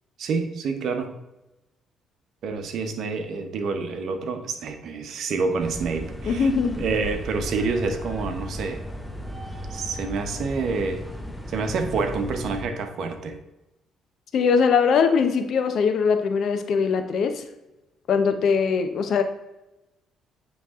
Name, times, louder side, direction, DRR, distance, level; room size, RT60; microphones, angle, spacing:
voice 1, 0.2-1.2 2.4-6.5 6.8-8.8 9.7-11.0 11.5-13.4, right 4 dB, 65° right, 7 dB, 0.9 m, -28 dB
sound 1, 5.6-12.6, equal, ahead, 0.8 m, -35 dB
voice 2, 6.2-6.8 14.3-17.4 18.1-19.2, left 5 dB, 65° left, 7 dB, 0.8 m, -21 dB
9.2 x 3.3 x 3.6 m, 0.98 s
cardioid pair, 85°, 0 cm